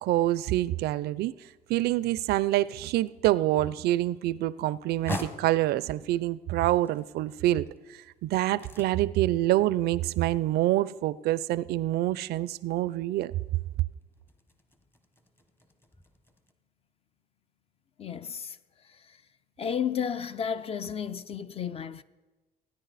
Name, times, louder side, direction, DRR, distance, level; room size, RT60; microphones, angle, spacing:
voice 1, 0.0-1.3 1.7-13.3, right 15 dB, 70° right, 0.4 m, -26 dB
sound 1, 3.3-16.5, left 1 dB, 15° left, 1.0 m, -46 dB
voice 2, 18.0-18.6 19.6-22.0, left 7 dB, 35° left, 0.5 m, -32 dB
18.0 x 9.9 x 4.1 m
cardioid pair, 110°, 17 cm